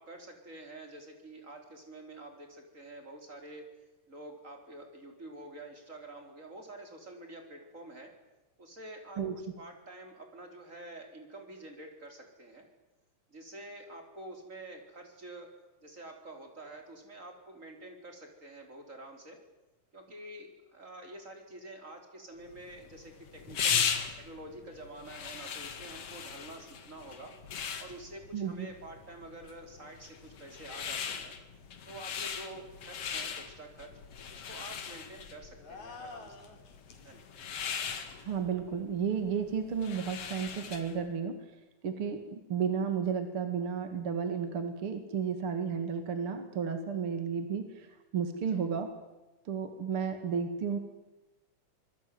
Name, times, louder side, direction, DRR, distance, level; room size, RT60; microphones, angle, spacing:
voice 1, 0.0-3.7 4.1-8.1 8.6-12.7 13.3-15.5 15.8-19.4 19.9-23.9 24.2-27.3 27.8-31.3 31.9-33.9 34.3-36.4 37.0-37.2 37.5-37.6 48.5-48.7, right 1 dB, 25° right, 4 dB, 4.5 m, -48 dB
sound 1, 22.5-41.0, left 7 dB, 55° left, 2.7 m, -38 dB
voice 2, 28.3-28.7 38.2-41.6 41.8-47.9 48.1-48.9 49.4-50.8, right 6 dB, 50° right, 7 dB, 2.7 m, -33 dB
sound 2, 35.6-37.1, left 4 dB, 70° left, 4.1 m, -48 dB
26.5 x 21.0 x 9.5 m, 1.1 s
omnidirectional pair, 3.5 m